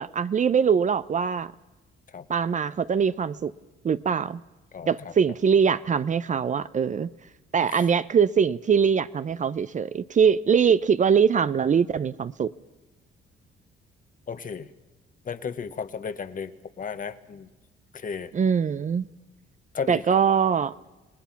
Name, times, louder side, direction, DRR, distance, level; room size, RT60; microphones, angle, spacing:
voice 1, 0.0-1.5 2.3-3.5 3.8-4.4 4.9-7.1 7.5-12.5 18.3-19.1 19.9-20.7, right 7 dB, 40° right, 0.6 m, -22 dB
voice 2, 4.7-5.1 7.7-7.9 14.3-14.7 15.2-17.5 17.9-18.3 19.7-20.2, left 6 dB, 45° left, 1.2 m, -34 dB
27.0 x 19.0 x 5.9 m
cardioid pair, 90°, 20 cm